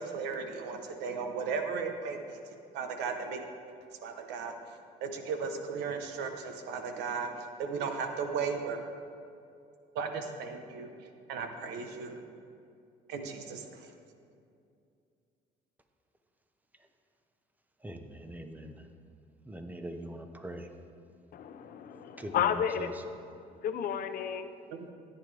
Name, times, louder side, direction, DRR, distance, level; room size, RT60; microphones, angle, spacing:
voice 1, 0.0-2.4 2.7-3.4 4.0-4.6 5.0-8.8 9.9-12.2 13.1-13.9 24.7-24.9, right 5 dB, 90° right, 6 dB, 1.1 m, -36 dB
voice 2, 17.8-18.8 19.4-20.7 22.2-22.9, right 1 dB, 10° right, 6 dB, 0.9 m, -42 dB
voice 3, 21.3-22.9 23.6-24.5, left 9 dB, 60° left, 9 dB, 0.7 m, -32 dB
14.0 x 9.5 x 3.4 m, 2.5 s
cardioid pair, 110°, 17 cm